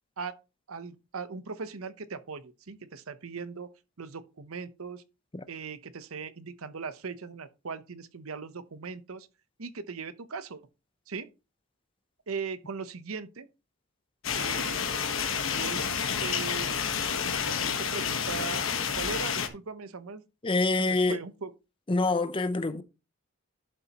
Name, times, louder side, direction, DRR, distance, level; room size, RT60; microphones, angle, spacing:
voice 1, 0.7-3.7 4.0-5.0 5.5-9.3 9.6-10.6 11.1-11.3 12.3-13.5 14.3-16.8 17.4-18.6 19.0-20.2 20.8-21.5, right 5 dB, 75° right, 0.8 m, -39 dB
sound 1, 14.2-19.5, left 7 dB, 60° left, 1.2 m, -29 dB
voice 2, 20.4-21.2 21.9-22.8, left 3 dB, 25° left, 0.6 m, -26 dB
11.5 x 6.9 x 2.9 m
head